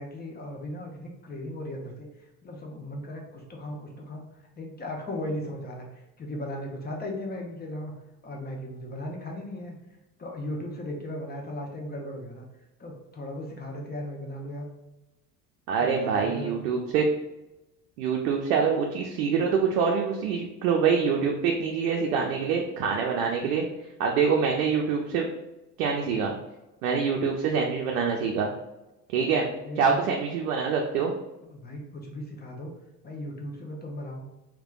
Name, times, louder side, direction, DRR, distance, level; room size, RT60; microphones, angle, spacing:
voice 1, 0.0-2.1 2.4-4.3 4.6-7.9 8.2-9.8 10.2-12.4 12.8-14.7 15.8-16.7 29.6-30.1 31.4-32.7 33.0-34.2, left 1 dB, 20° left, 0 dB, 0.8 m, -37 dB
voice 2, 15.7-17.1 18.0-23.6 24.0-25.3 25.8-26.3 26.8-28.5 29.1-29.5 29.8-31.1, right 6 dB, 65° right, 0 dB, 0.6 m, -25 dB
3.3 x 3.2 x 2.4 m, 0.98 s
figure-of-eight pair, 60°, 49 cm